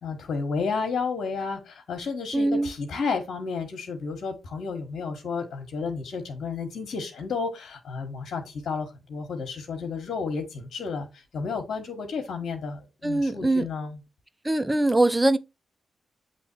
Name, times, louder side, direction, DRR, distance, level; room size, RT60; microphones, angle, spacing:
voice 1, 0.0-14.0, left 4 dB, 65° left, 1.4 m, -32 dB
voice 2, 2.3-2.7 13.0-13.7 14.4-15.4, right 2 dB, 15° right, 0.8 m, -22 dB
7.6 x 3.2 x 4.5 m
hypercardioid pair, 40°, 0 cm